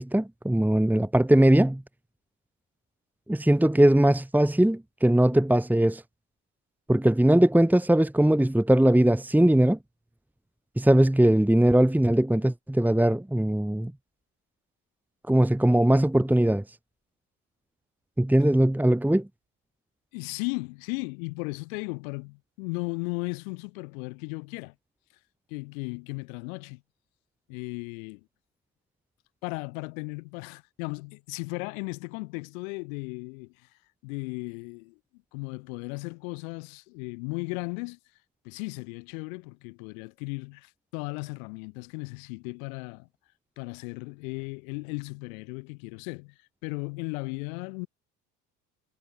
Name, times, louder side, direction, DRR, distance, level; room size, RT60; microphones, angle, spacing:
voice 1, 0.0-1.8 3.3-6.0 6.9-9.8 10.8-13.9 15.3-16.6 18.2-19.3, right 1 dB, 5° right, 1.9 m, -20 dB
voice 2, 20.1-24.7 25.5-26.8 27.5-28.2 29.4-33.5 34.0-35.0 35.3-38.0 38.4-43.1 43.6-46.3 46.6-47.9, left 31 dB, 80° left, 2.5 m, -36 dB
supercardioid pair, 75°, 41 cm